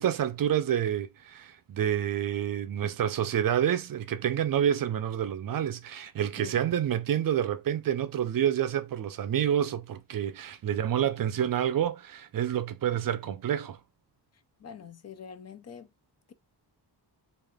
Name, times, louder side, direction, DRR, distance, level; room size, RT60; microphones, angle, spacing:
voice 1, 0.0-13.8, right 10 dB, 55° right, 0.5 m, -28 dB
voice 2, 6.4-6.8 10.7-11.1 11.3-11.5 14.6-15.9, left 7 dB, 40° left, 0.4 m, -46 dB
3.3 x 2.4 x 3.5 m
wide cardioid pair, 120°, 41 cm